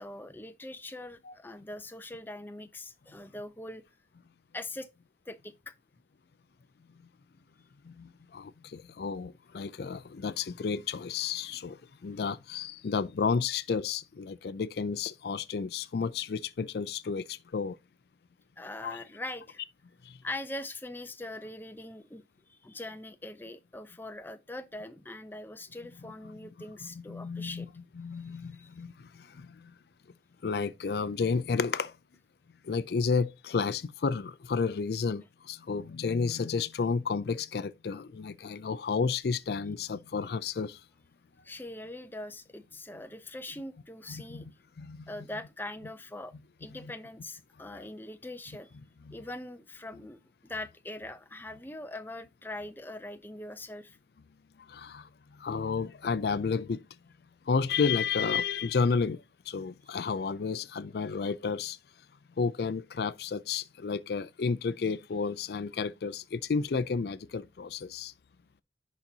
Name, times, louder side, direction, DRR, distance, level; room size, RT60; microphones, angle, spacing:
voice 1, 0.0-3.8 4.5-4.9 5.3-5.7 18.6-19.6 20.2-22.2 22.5-27.7 28.2-28.7 41.4-44.5 45.1-46.3 46.6-48.8 49.1-54.0, left 1 dB, 10° left, 0.6 m, -42 dB
voice 2, 7.8-17.8 18.8-19.0 20.0-20.2 27.1-27.7 28.0-29.7 30.4-32.0 32.6-40.8 44.1-44.5 44.8-45.1 49.1-49.2 54.7-56.8 57.5-61.8 62.4-68.1, left 5 dB, 60° left, 0.4 m, -32 dB
10.5 x 4.0 x 2.8 m
head